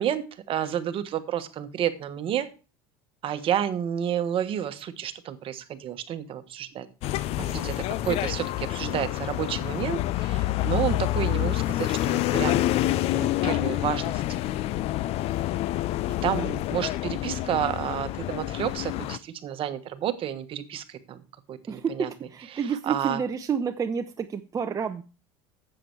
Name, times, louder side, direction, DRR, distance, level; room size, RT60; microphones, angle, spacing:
voice 1, 0.0-2.5 3.2-6.9 7.4-12.6 13.1-14.2 16.2-22.1 22.7-23.2, right 10 dB, 45° right, 10 dB, 1.3 m, -30 dB
sound 1, 7.0-19.2, left 15 dB, 55° left, 0.5 m, -27 dB
voice 2, 7.4-7.7 21.7-25.0, right 6 dB, 30° right, 6 dB, 0.8 m, -30 dB
10.0 x 7.9 x 4.6 m, 0.34 s
supercardioid pair, 95°, 13 cm